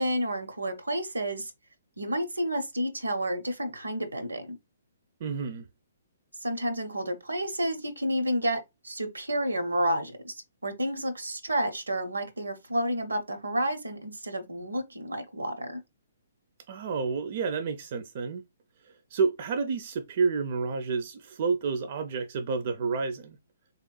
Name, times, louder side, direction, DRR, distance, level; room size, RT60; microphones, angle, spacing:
voice 1, 0.0-1.5 2.0-4.6 6.4-8.6 8.8-10.3 10.6-15.8, right 1 dB, 85° right, 0.7 m, -30 dB
voice 2, 5.2-5.6 16.7-18.4 19.1-23.4, right 5 dB, 50° right, 0.4 m, -29 dB
3.2 x 2.9 x 2.3 m
figure-of-eight pair, 130°, 0 cm